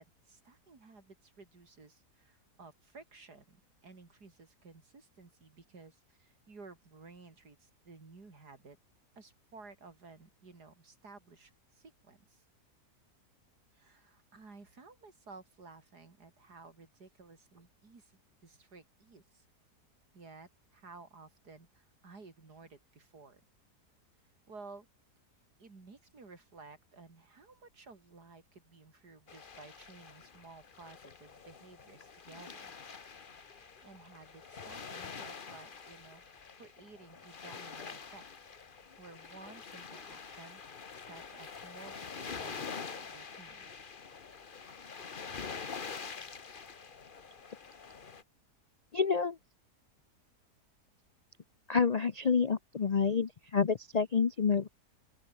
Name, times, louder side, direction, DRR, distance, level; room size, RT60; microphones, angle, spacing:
voice 1, 0.0-8.8 9.2-12.4 13.7-18.1 18.4-19.5 20.1-23.4 24.5-24.9 25.6-32.7 33.5-38.2 39.0-43.9, right 3 dB, 80° right, 4.2 m, -55 dB
sound 1, 29.3-48.2, left 5 dB, 35° left, 1.2 m, -46 dB
voice 2, 48.9-49.4 51.7-54.7, left 5 dB, 55° left, 0.4 m, -28 dB
open air
omnidirectional pair, 1.7 m